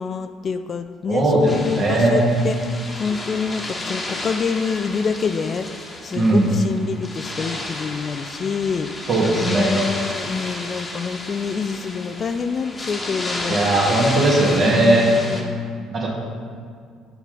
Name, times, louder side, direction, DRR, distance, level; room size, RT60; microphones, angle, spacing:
voice 1, 0.0-8.9 9.4-13.6 14.1-15.6, left 5 dB, 40° left, 9 dB, 0.4 m, -27 dB
voice 2, 1.1-1.5 1.8-2.3 6.1-6.5 9.1-9.7 13.5-15.1 15.9-16.1, right 2 dB, 45° right, -3 dB, 2.0 m, -18 dB
sound 1, 1.5-15.4, left 1 dB, 20° left, 1.2 m, -32 dB
6.8 x 6.1 x 5.2 m, 2.1 s
figure-of-eight pair, 50°, 0 cm